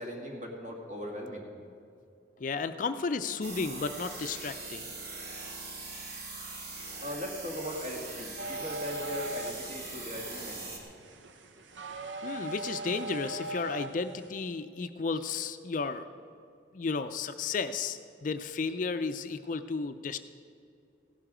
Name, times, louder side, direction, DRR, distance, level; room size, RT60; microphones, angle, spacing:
voice 1, 0.0-1.5 7.0-10.6, equal, 40° right, 0 dB, 2.2 m, -39 dB
voice 2, 2.4-4.9 12.2-16.1 16.7-20.2, left 4 dB, 45° left, 10 dB, 0.4 m, -33 dB
Torture Machine, 3.4-10.8, right 3 dB, 55° right, 2.2 m, -42 dB
sound 1, 8.4-14.3, right 1 dB, 85° right, 0.9 m, -40 dB
16.0 x 11.5 x 5.0 m, 2.5 s
head